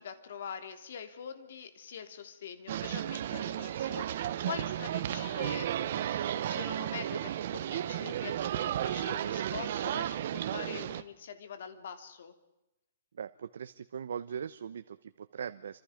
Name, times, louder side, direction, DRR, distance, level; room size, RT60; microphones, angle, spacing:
voice 1, 0.0-12.3, left 7 dB, 60° left, 8 dB, 3.3 m, -44 dB
sound 1, 2.7-11.0, right 11 dB, 50° right, 1.2 m, -33 dB
voice 2, 13.2-15.8, right 7 dB, 75° right, 10 dB, 1.0 m, -40 dB
28.0 x 26.5 x 5.2 m, 0.94 s
hypercardioid pair, 165°, 0 cm